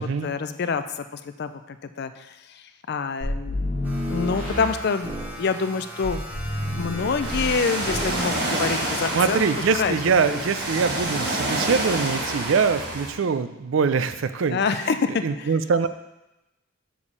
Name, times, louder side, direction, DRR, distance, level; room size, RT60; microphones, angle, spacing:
voice 1, 0.0-6.2 6.8-9.4 9.8-10.0 10.3-10.5 14.5-15.5, left 5 dB, 50° left, 10 dB, 0.4 m, -27 dB
sound 1, 3.2-5.4 6.0-7.6 7.9-8.2, left 1 dB, 30° right, 2.7 m, -29 dB
sound 2, 3.8-10.9, equal, 10° right, 0.9 m, -39 dB
Ocean, 7.2-13.1, right 1 dB, 50° right, 1.4 m, -28 dB
voice 2, 9.1-14.6 15.2-15.9, right 5 dB, 65° right, 12 dB, 0.4 m, -23 dB
7.0 x 5.0 x 5.4 m, 0.98 s
head